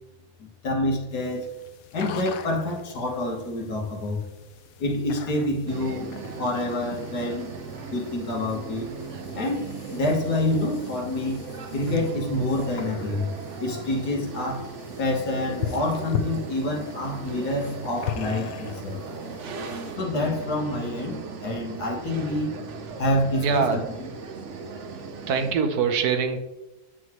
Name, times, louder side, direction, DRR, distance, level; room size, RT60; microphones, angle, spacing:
voice 1, 0.4-1.5 1.9-4.2 4.8-6.1 6.4-7.5 7.9-8.9 9.3-9.6 9.9-11.4 11.7-13.3 13.6-14.7 15.0-19.0 19.9-22.5 23.0-23.8, left 1 dB, 90° left, -1 dB, 1.9 m, -27 dB
sound 1, 1.1-19.9, left 8 dB, 70° left, 1.0 m, -40 dB
sound 2, 5.7-25.5, right 4 dB, 55° right, 1.0 m, -37 dB
voice 2, 23.4-23.8 25.3-26.4, right 6 dB, 80° right, 7 dB, 1.3 m, -23 dB
7.7 x 6.1 x 3.0 m, 1.0 s
omnidirectional pair, 1.6 m